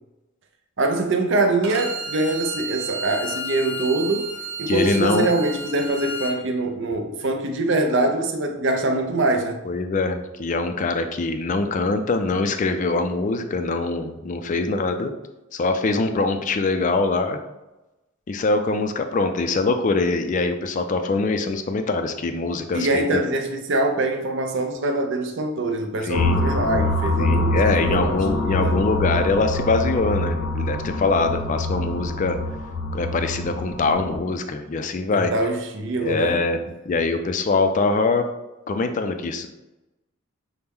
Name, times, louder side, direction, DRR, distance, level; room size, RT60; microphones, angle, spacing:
voice 1, 0.8-4.3 4.6-9.6 22.7-28.7 35.1-36.4, right 2 dB, 60° right, 4 dB, 0.5 m, -24 dB
Bowed string instrument, 1.6-6.3, right 1 dB, 85° right, 0.9 m, -32 dB
voice 2, 4.7-5.3 9.7-15.1 15.5-17.4 18.3-23.2 26.0-26.4 26.8-32.4 32.9-35.3 36.0-36.6 36.9-38.2 38.7-39.5, left 3 dB, 35° left, 7 dB, 0.3 m, -23 dB
sound 1, 26.1-34.2, left 2 dB, 85° left, 0.7 m, -25 dB
5.8 x 2.1 x 3.5 m, 0.99 s
head